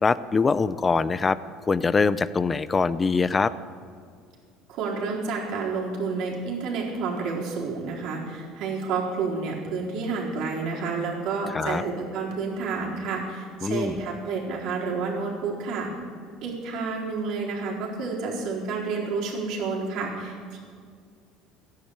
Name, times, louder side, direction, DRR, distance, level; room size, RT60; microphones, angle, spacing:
voice 1, 0.0-1.4 1.7-3.5 11.5-11.8 13.6-13.9, left 4 dB, 20° left, 16 dB, 0.5 m, -23 dB
voice 2, 4.7-15.9 16.4-20.6, right 4 dB, 65° right, -2 dB, 4.1 m, -30 dB
14.5 x 10.5 x 8.0 m, 2.1 s
cardioid pair, 130°, 0 cm